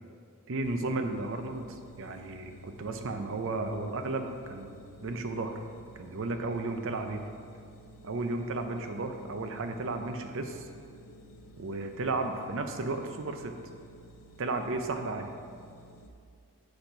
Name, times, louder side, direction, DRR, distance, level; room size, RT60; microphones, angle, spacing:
voice 1, 0.5-5.5 6.0-7.2 8.0-10.7 11.6-13.5 14.4-15.3, right 2 dB, 60° right, 6 dB, 0.6 m, -34 dB
sound 1, 0.6-16.1, equal, 65° left, 0.6 m, -53 dB
7.9 x 4.4 x 5.7 m, 2.3 s
head